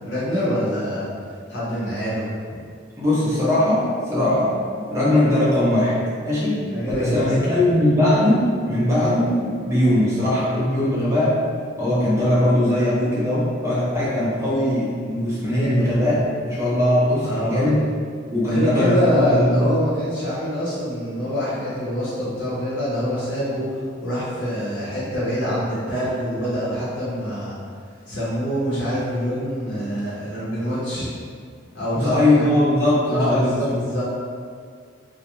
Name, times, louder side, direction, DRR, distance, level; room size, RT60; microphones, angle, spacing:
voice 1, 0.0-1.1 1.5-2.6 6.7-7.6 17.2-17.7 18.4-27.6 28.1-31.1 31.7-32.2 33.1-34.0, equal, 70° left, -10 dB, 0.7 m, -25 dB
voice 2, 3.0-6.0 6.2-6.6 7.0-11.4 11.8-17.8 18.3-19.7 31.9-33.6, left 1 dB, 15° right, -8 dB, 0.6 m, -20 dB
2.3 x 2.1 x 2.9 m, 2.1 s
head